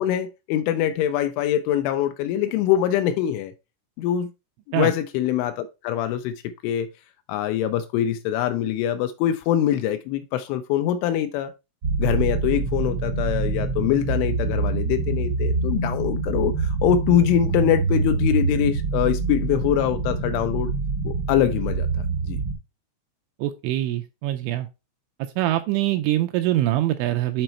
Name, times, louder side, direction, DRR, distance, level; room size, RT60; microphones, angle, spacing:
voice 1, 0.0-3.5 4.0-4.3 4.7-6.4 6.6-6.9 7.3-11.5 12.0-20.7 21.0-21.9 22.2-22.4, left 11 dB, 85° left, 2.7 m, -23 dB
sound 1, 11.8-22.5, right 4 dB, 30° right, 3.4 m, -25 dB
voice 2, 23.4-24.7 25.4-27.4, right 14 dB, 85° right, 2.7 m, -24 dB
7.8 x 4.1 x 4.3 m
omnidirectional pair, 5.9 m